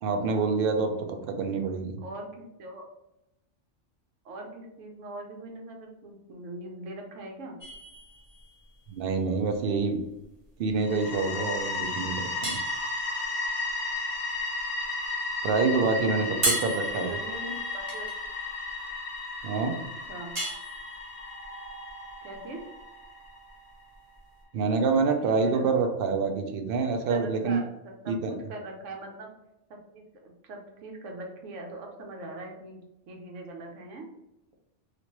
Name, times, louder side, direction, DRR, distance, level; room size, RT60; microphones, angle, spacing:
voice 1, 0.0-2.0 8.9-10.0 10.6-12.6 15.4-17.1 19.4-19.8 24.5-27.6 28.1-28.4, right 4 dB, 60° right, 5 dB, 0.6 m, -27 dB
voice 2, 2.0-2.9 4.2-7.6 16.2-18.1 19.8-20.4 22.2-22.6 25.2-25.7 27.1-29.3 29.7-32.8 33.1-34.1, right 2 dB, 85° right, 2 dB, 1.0 m, -41 dB
sound 1, 7.6-24.4, right 2 dB, 30° right, 0.8 m, -38 dB
Spooky ambient sound, 10.8-23.5, left 3 dB, 45° left, 0.8 m, -34 dB
2.9 x 2.5 x 2.9 m, 0.90 s
omnidirectional pair, 1.2 m